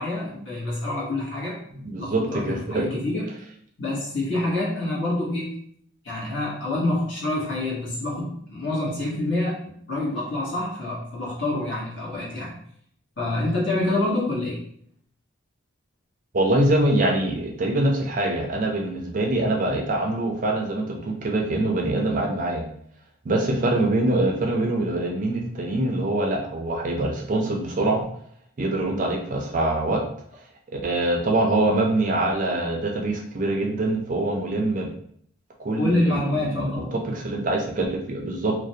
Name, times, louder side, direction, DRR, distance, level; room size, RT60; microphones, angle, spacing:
voice 1, 0.0-1.6 2.0-3.4 3.8-5.6 6.0-12.5 13.2-14.6 35.8-37.0, left 2 dB, 60° left, -6 dB, 0.9 m, -27 dB
voice 2, 1.8-3.0 16.3-22.6 23.3-28.0 28.6-30.0 30.8-34.9 35.6-38.6, right 2 dB, 40° right, 1 dB, 0.3 m, -24 dB
2.4 x 2.0 x 2.7 m, 0.65 s
head